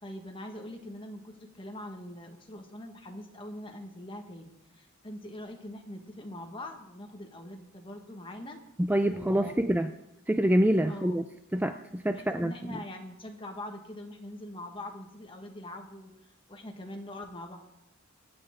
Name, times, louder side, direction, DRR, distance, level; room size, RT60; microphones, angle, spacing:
voice 1, 0.0-8.6 9.1-9.6 10.9-11.2 12.1-16.1 16.5-17.6, left 1 dB, 25° left, 3 dB, 1.5 m, -43 dB
voice 2, 8.8-9.9 10.3-11.2 11.5-12.8, right 1 dB, 10° right, 8 dB, 0.4 m, -26 dB
25.0 x 8.7 x 3.6 m, 0.88 s
head